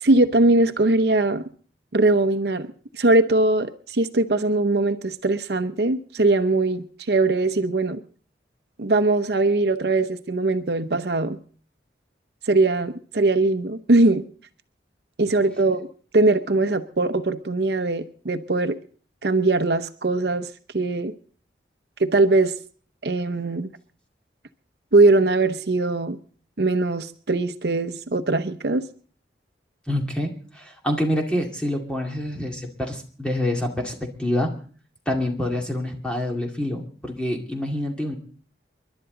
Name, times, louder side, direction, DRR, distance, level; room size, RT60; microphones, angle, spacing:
voice 1, 0.0-1.4 1.9-8.0 8.8-11.4 12.5-14.2 15.2-15.9 16.1-18.8 19.2-20.5 20.7-21.1 22.0-22.5 23.0-23.7 24.9-26.2 26.6-28.8, right 2 dB, 65° right, 9 dB, 0.8 m, -21 dB
voice 2, 29.9-34.5 35.1-38.2, left 1 dB, 5° left, 1 dB, 2.3 m, -26 dB
29.0 x 11.5 x 3.9 m, 0.43 s
head